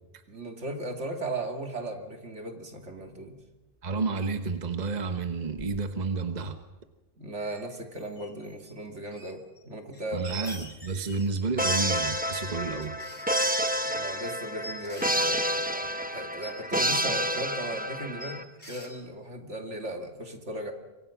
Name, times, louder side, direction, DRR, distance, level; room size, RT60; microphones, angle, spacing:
voice 1, 0.3-3.4 7.2-10.5 13.8-20.7, right 1 dB, 70° right, 4 dB, 3.0 m, -37 dB
voice 2, 3.8-6.6 10.1-13.0, right 4 dB, 35° right, 8 dB, 1.3 m, -30 dB
sound 1, 5.5-5.8 6.2-6.3 6.5-6.6 7.4-8.7 9.1-9.6 9.9-12.1 12.8-17.9 18.2-19.0, right 1 dB, 40° left, 4.0 m, -46 dB
sound 2, 11.6-18.4, equal, 10° right, 1.0 m, -29 dB
27.0 x 24.5 x 6.0 m, 1.1 s
omnidirectional pair, 1.2 m